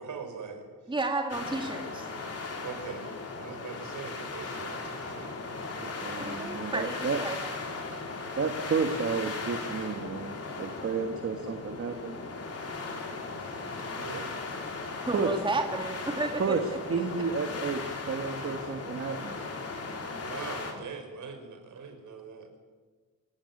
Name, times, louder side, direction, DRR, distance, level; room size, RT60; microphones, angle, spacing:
voice 1, 0.0-0.9 2.6-5.7 7.1-7.2 13.6-14.3 20.2-22.6, right 5 dB, 60° right, 5 dB, 5.5 m, -42 dB
voice 2, 0.9-2.1 6.2-7.4 15.1-16.6, right 2 dB, 15° right, 3 dB, 2.1 m, -32 dB
sound 1, 1.3-20.7, left 3 dB, 45° left, 4.3 m, -37 dB
voice 3, 5.8-7.2 8.4-12.2 15.1-15.3 16.4-16.6 16.9-19.3, right 5 dB, 40° right, 6 dB, 1.7 m, -31 dB
26.5 x 18.0 x 9.8 m, 1.4 s
wide cardioid pair, 170°, 33 cm